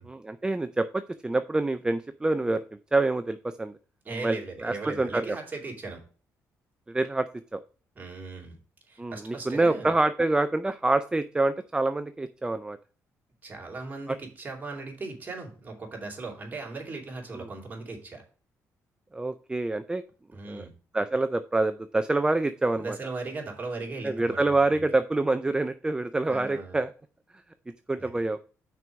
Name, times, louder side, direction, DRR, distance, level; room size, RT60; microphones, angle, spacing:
voice 1, 0.1-2.6 2.9-3.7 4.2-5.4 6.9-7.6 9.0-12.8 17.4-17.5 19.1-20.0 20.5-20.7 20.9-23.0 24.0-26.9 27.9-28.4, right 2 dB, 15° right, 11 dB, 0.4 m, -26 dB
voice 2, 4.0-6.0 7.9-8.6 8.9-9.9 13.4-18.2 20.3-20.7 22.8-24.8 26.3-26.8 28.0-28.2, right 3 dB, 30° right, 0 dB, 2.8 m, -38 dB
5.9 x 4.6 x 6.2 m, 0.39 s
cardioid pair, 100°, 6 cm